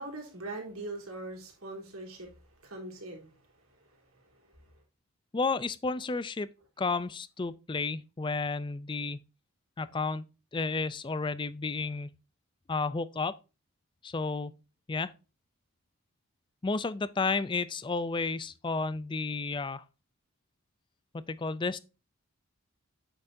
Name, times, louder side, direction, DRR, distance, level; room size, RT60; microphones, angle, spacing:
voice 1, 0.0-4.6, right 2 dB, 70° right, 3.3 m, -43 dB
voice 2, 5.3-6.5 6.8-9.2 9.8-10.2 10.5-12.1 12.7-13.4 14.0-14.5 14.9-15.1 16.6-19.8 21.1-21.8, left 4 dB, 20° left, 0.4 m, -32 dB
8.6 x 6.6 x 2.6 m
head